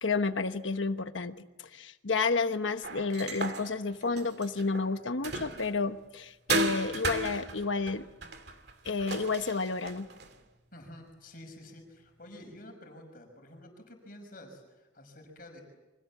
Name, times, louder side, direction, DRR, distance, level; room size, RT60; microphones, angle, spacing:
voice 1, 0.0-8.1 8.8-10.1, left 4 dB, 85° left, 9 dB, 1.1 m, -31 dB
sound 1, 2.8-5.9 6.5-10.4, right 3 dB, 55° right, 2.6 m, -35 dB
voice 2, 10.7-15.6, left 1 dB, 45° left, 4 dB, 5.9 m, -50 dB
30.0 x 25.0 x 7.4 m, 1.0 s
head